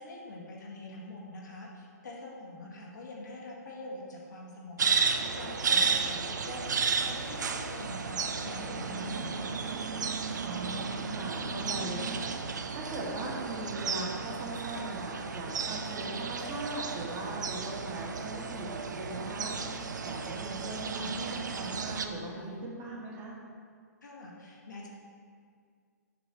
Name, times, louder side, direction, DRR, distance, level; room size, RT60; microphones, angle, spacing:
voice 1, 0.0-9.7 24.0-24.9, left 2 dB, 80° left, -3 dB, 1.6 m, -44 dB
sound 1, 4.8-22.1, right 5 dB, 80° right, 0.5 m, -33 dB
voice 2, 5.7-6.2 10.4-23.4, right 1 dB, 35° right, -3 dB, 1.5 m, -40 dB
6.8 x 3.2 x 6.1 m, 2.1 s
hypercardioid pair, 125°, 10 cm